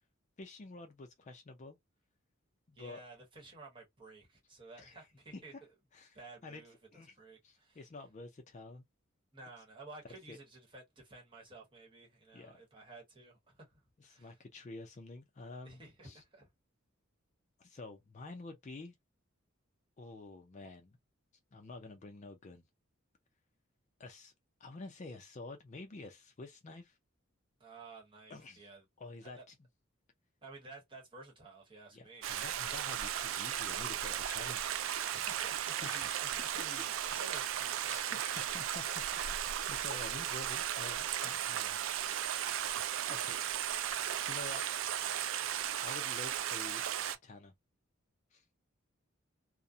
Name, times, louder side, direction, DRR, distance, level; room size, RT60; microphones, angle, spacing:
voice 1, 0.4-1.8 2.7-3.0 4.8-5.0 5.9-6.6 6.9-7.2 7.4-8.8 10.3-10.4 12.3-12.6 14.0-16.2 17.6-19.0 20.0-21.0 21.5-22.6 24.0-24.3 24.6-26.9 28.3-28.6 29.0-29.5 31.9-34.7 35.8-36.3 37.8-38.8 39.1-42.3 43.1-43.5 44.3-44.7 45.8-47.5 48.3-48.4, left 3 dB, 35° left, 0.4 m, -49 dB
voice 2, 2.7-5.5 6.1-7.8 9.3-14.4 15.6-16.5 27.6-28.8 29.2-29.4 30.4-32.3 35.1-38.9 42.7-42.8, right 2 dB, 25° right, 1.0 m, -54 dB
Stream, 32.2-47.2, right 10 dB, 75° right, 0.3 m, -36 dB
2.4 x 2.0 x 2.5 m
head